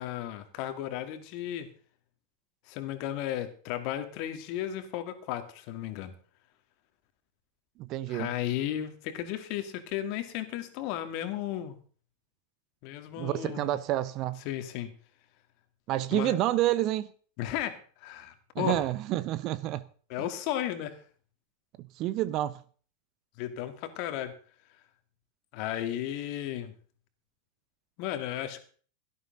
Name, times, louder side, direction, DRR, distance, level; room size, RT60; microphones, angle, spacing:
voice 1, 0.0-1.7 2.7-6.1 8.1-11.8 12.8-13.7 14.4-14.9 16.1-16.4 17.4-18.8 20.1-21.0 23.4-24.3 25.5-26.7 28.0-28.6, left 12 dB, 45° left, 2.2 m, -34 dB
voice 2, 7.8-8.3 13.2-14.4 15.9-17.1 18.5-19.8 20.2-20.3 21.8-22.6, right 14 dB, 40° right, 0.8 m, -29 dB
17.0 x 12.5 x 3.9 m
figure-of-eight pair, 90°, 0 cm